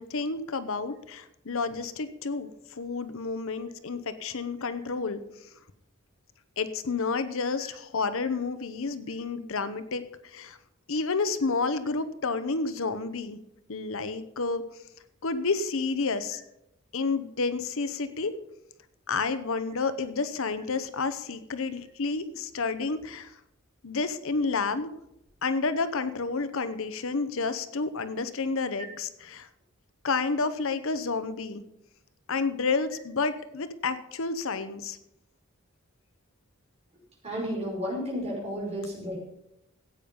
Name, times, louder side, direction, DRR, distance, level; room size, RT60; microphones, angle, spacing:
voice 1, 0.0-5.5 6.6-10.6 10.9-13.4 13.7-14.6 15.2-16.4 16.9-18.3 19.1-23.4 23.8-24.9 25.4-29.5 30.0-31.6 32.3-35.0, left 4 dB, 65° left, 12 dB, 0.9 m, -30 dB
voice 2, 37.2-39.2, equal, 30° right, -3 dB, 5.3 m, -32 dB
15.5 x 8.8 x 5.4 m, 0.83 s
head